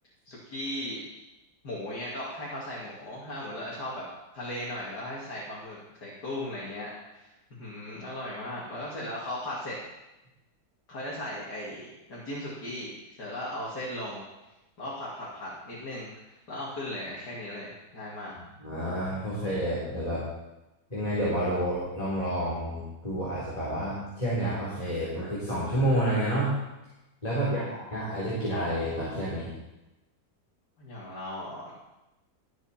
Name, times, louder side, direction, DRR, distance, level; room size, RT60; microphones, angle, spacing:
voice 1, 0.3-1.0 1.6-4.1 4.3-7.3 7.6-9.8 10.9-14.2 14.8-18.3 27.4-27.8 30.8-31.7, left 1 dB, 75° left, -6 dB, 3.3 m, -37 dB
voice 2, 18.6-20.2 20.9-26.5 27.2-29.5, right 1 dB, 20° left, -9 dB, 4.1 m, -29 dB
21.5 x 8.2 x 4.5 m, 0.99 s
omnidirectional pair, 1.8 m